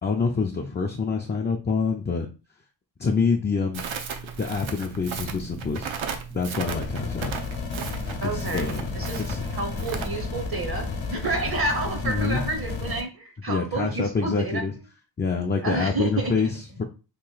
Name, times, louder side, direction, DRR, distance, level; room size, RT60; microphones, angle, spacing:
voice 1, 0.0-2.3 3.0-3.8 4.4-5.9 6.3-7.3 8.2-9.4 12.0-12.4 13.5-14.7 15.2-16.8, left 4 dB, 25° left, 2 dB, 0.3 m, -26 dB
Crackle, 3.7-10.1, right 6 dB, 80° right, 0.7 m, -35 dB
sound 1, 6.6-13.0, left 4 dB, 70° left, 0.8 m, -32 dB
voice 2, 8.2-10.9 11.1-14.6 15.6-16.5, right 3 dB, 50° right, 4 dB, 0.8 m, -30 dB
3.0 x 2.5 x 3.9 m, 0.33 s
wide cardioid pair, 115°, 46 cm